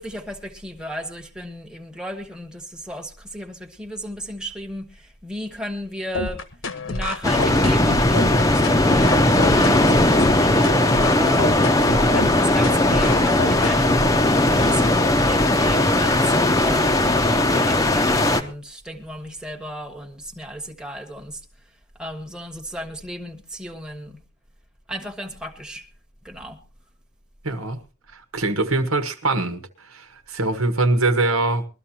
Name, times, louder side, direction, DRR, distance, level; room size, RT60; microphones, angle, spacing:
voice 1, 0.0-6.4 6.8-11.8 12.1-14.1 14.5-21.4 22.0-24.2 24.9-25.8 26.2-26.6, equal, 5° right, 1.2 m, -34 dB
sound 1, 6.1-14.1, left 2 dB, 65° left, 1.2 m, -28 dB
sound 2, 7.2-18.4, left 1 dB, 15° left, 0.8 m, -18 dB
voice 2, 27.4-27.8 28.1-31.7, right 2 dB, 80° right, 1.4 m, -23 dB
21.0 x 13.0 x 2.8 m
head